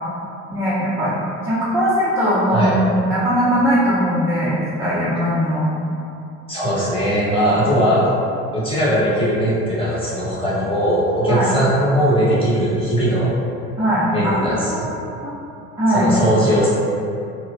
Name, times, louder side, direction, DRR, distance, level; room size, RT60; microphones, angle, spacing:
voice 1, 0.5-1.2 1.4-5.7 11.3-11.5 13.8-15.3 15.8-16.1, equal, 5° right, -10 dB, 0.4 m, -20 dB
voice 2, 6.5-8.0 8.5-13.3 14.1-14.9 15.9-16.7, equal, 10° left, -9 dB, 1.0 m, -19 dB
2.9 x 2.2 x 2.4 m, 2.6 s
hypercardioid pair, 60°, 43 cm